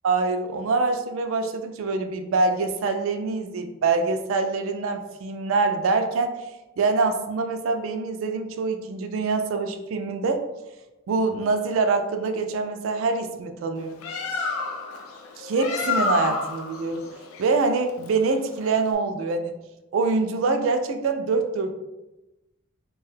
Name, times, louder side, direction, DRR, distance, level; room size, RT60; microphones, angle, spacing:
voice 1, 0.0-6.4 6.8-10.4 11.1-14.0 15.4-17.1 17.4-19.5 19.9-21.8, right 3 dB, 70° right, 7 dB, 0.3 m, -25 dB
Bird, 13.8-18.9, left 4 dB, 90° left, 0.4 m, -30 dB
2.6 x 2.2 x 3.2 m, 1.0 s
head